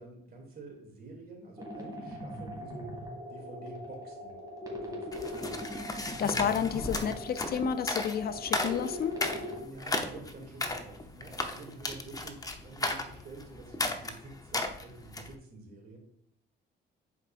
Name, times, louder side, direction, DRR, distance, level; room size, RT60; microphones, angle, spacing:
voice 1, 0.0-3.0 3.3-4.3 4.7-5.3 9.5-16.0, right 3 dB, 50° right, 2.6 m, -48 dB
sound 1, 1.6-9.6, left 1 dB, 20° right, 2.1 m, -40 dB
sound 2, 5.1-15.3, left 2 dB, 20° left, 0.8 m, -35 dB
voice 2, 6.0-9.2, left 8 dB, 50° left, 0.4 m, -31 dB
10.5 x 4.6 x 2.5 m
cardioid pair, 90°, 20 cm